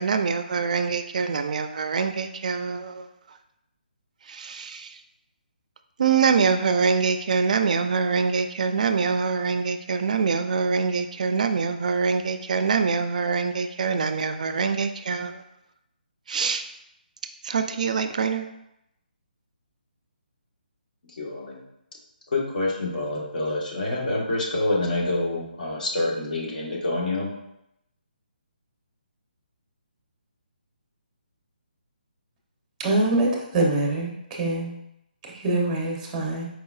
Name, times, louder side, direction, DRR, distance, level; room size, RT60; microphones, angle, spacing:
voice 1, 0.0-3.1 4.3-5.0 6.0-15.4 16.3-16.6 17.4-18.5, right 5 dB, 50° right, 0.4 m, -24 dB
voice 2, 21.2-21.6 22.3-27.3, left 2 dB, 60° left, 1.4 m, -27 dB
voice 3, 32.8-34.7 35.3-36.5, right 2 dB, 10° right, 0.7 m, -24 dB
4.7 x 3.7 x 2.4 m
hypercardioid pair, 165°, 5 cm